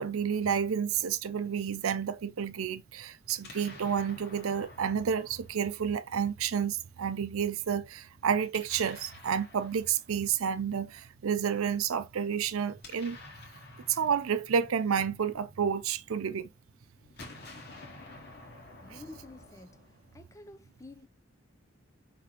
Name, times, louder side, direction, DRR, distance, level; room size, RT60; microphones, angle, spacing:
voice 1, 0.0-13.2 13.9-16.5 18.9-19.0, right 7 dB, 90° right, 0.5 m, -30 dB
Explosion, 3.3-6.3 8.4-10.6 12.5-16.0 17.0-20.4, left 2 dB, 55° left, 1.5 m, -51 dB
voice 2, 18.8-19.8 20.1-21.1, left 2 dB, 15° left, 0.4 m, -49 dB
5.0 x 3.5 x 2.9 m
head